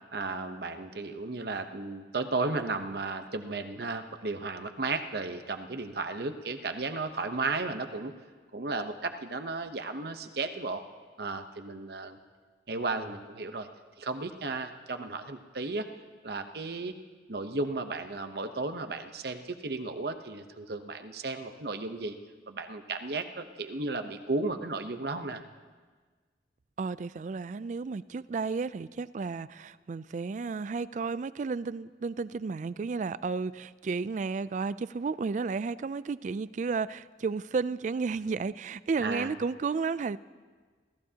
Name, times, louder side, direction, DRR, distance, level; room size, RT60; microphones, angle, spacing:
voice 1, 0.1-8.1 8.5-10.8 11.2-12.2 12.7-13.7 14.0-15.9 16.2-17.0 17.3-22.2 22.5-25.4 39.0-39.3, right 3 dB, 60° right, 7 dB, 0.9 m, -34 dB
voice 2, 26.8-40.2, right 4 dB, 45° right, 17 dB, 0.3 m, -32 dB
27.5 x 14.5 x 2.9 m, 1.5 s
head